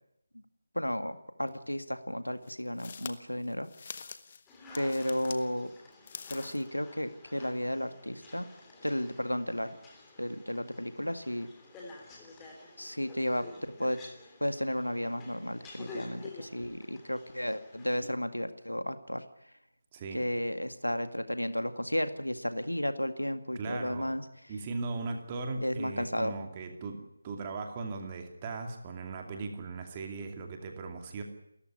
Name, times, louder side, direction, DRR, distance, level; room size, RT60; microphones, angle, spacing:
voice 1, 0.8-3.7 4.8-5.7 6.3-8.5 8.8-9.8 10.2-11.5 12.8-13.5 13.8-14.0 14.4-19.2 20.1-24.2 25.6-26.3, equal, 85° left, 9 dB, 2.0 m, -33 dB
sound 1, 1.5-1.6 2.4-5.4 5.9-6.7, left 5 dB, 30° left, 1.3 m, -45 dB
sound 2, 4.5-18.1, left 3 dB, 10° left, 3.4 m, -51 dB
voice 2, 19.9-20.2 23.5-24.1 24.5-31.2, right 3 dB, 20° right, 4 dB, 2.6 m, -38 dB
29.5 x 14.0 x 9.7 m, 0.81 s
figure-of-eight pair, 155°, 0 cm